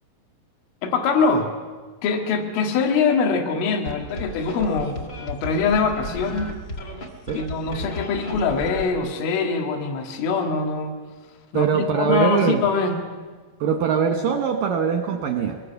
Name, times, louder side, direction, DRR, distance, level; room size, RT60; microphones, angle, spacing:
voice 1, 0.8-1.5 2.0-6.5 7.3-10.9 11.5-13.0, left 4 dB, 75° left, 5 dB, 4.3 m, -23 dB
sound 1, 3.8-8.9, left 1 dB, 40° left, 1.6 m, -34 dB
voice 2, 11.5-12.7 13.6-15.6, right 7 dB, 75° right, 5 dB, 2.0 m, -22 dB
23.0 x 22.0 x 7.1 m, 1.4 s
omnidirectional pair, 5.6 m